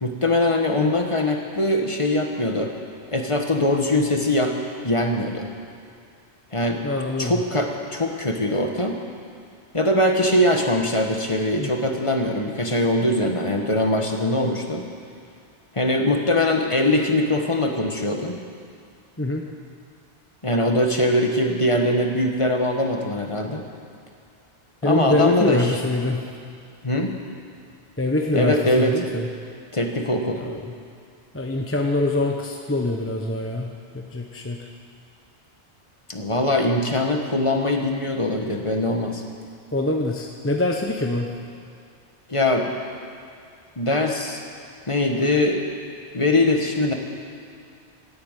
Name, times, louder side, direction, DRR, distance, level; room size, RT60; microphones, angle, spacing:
voice 1, 0.0-2.7 3.1-4.6 4.8-5.5 6.5-6.8 7.2-9.0 9.7-14.9 15.7-18.4 20.4-23.6 24.8-25.8 26.8-27.2 28.3-29.0 29.7-30.4 36.1-39.2 42.3-42.7 43.8-44.4 44.9-45.6 46.1-46.9, left 1 dB, 30° left, 2 dB, 1.4 m, -22 dB
voice 2, 6.8-7.3 11.6-11.7 19.2-19.4 24.8-26.2 28.0-29.3 30.4-30.6 31.3-33.7 33.9-34.6 39.7-41.3, left 2 dB, 15° left, 1 dB, 0.9 m, -24 dB
16.0 x 8.7 x 9.0 m, 2.4 s
omnidirectional pair, 1.1 m